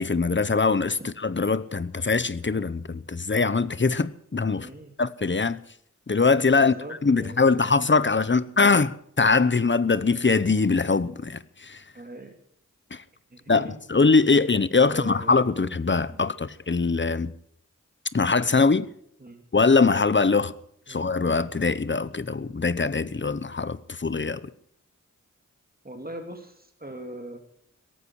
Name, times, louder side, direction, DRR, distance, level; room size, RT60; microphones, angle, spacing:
voice 1, 0.0-4.7 5.0-5.6 6.1-6.8 7.0-11.8 12.9-13.0 13.5-17.3 18.1-18.9 19.5-20.5 20.9-24.4, left 4 dB, 35° left, 0.9 m, -22 dB
voice 2, 4.5-5.0 6.5-7.7 8.3-8.4 11.9-12.3 13.3-13.8 14.9-15.3 16.1-16.2 19.2-19.4 20.9-21.0 25.8-27.4, right 1 dB, 30° right, 2.8 m, -40 dB
17.5 x 14.5 x 4.7 m
wide cardioid pair, 85°, 31 cm